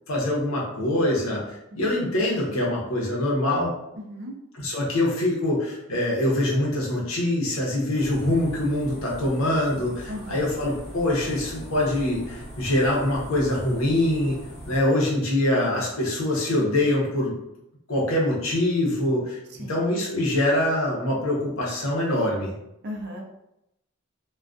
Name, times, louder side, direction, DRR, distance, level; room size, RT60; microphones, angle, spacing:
voice 1, 0.1-3.7 4.5-14.4 14.7-17.4 17.9-19.4 19.7-22.5, left 1 dB, 75° left, -3 dB, 0.8 m, -24 dB
voice 2, 3.9-4.4 10.1-10.4 19.6-19.8 22.8-23.2, equal, 50° right, 0 dB, 0.5 m, -36 dB
sound 1, 8.0-14.8, equal, 30° left, 1.0 m, -41 dB
2.3 x 2.3 x 2.4 m, 0.84 s
head